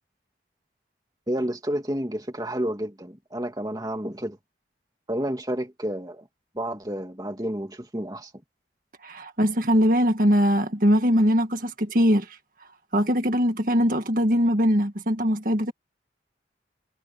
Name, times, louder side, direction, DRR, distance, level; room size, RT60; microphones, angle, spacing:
voice 1, 1.3-4.4 5.1-6.3 6.5-8.3, right 1 dB, 20° right, 2.4 m, -30 dB
voice 2, 9.0-12.4 12.9-15.7, equal, 50° right, 1.8 m, -21 dB
head